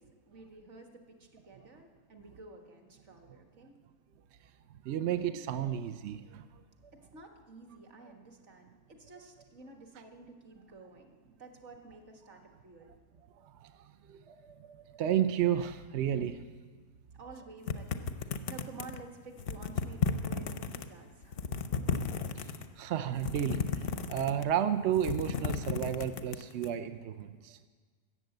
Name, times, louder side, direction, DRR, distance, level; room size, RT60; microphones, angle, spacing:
voice 1, 0.0-3.7 6.9-12.9 17.1-21.4, right 3 dB, 45° right, 3 dB, 1.8 m, -52 dB
voice 2, 4.8-6.4 13.4-13.7 14.1-16.5 22.8-27.6, right 10 dB, 70° right, 10 dB, 0.6 m, -32 dB
sound 1, 17.7-19.0 19.4-20.9 21.2-22.7 23.2-24.5 24.9-26.7, left 6 dB, 55° left, 0.6 m, -33 dB
14.0 x 8.7 x 7.8 m, 1.5 s
omnidirectional pair, 1.7 m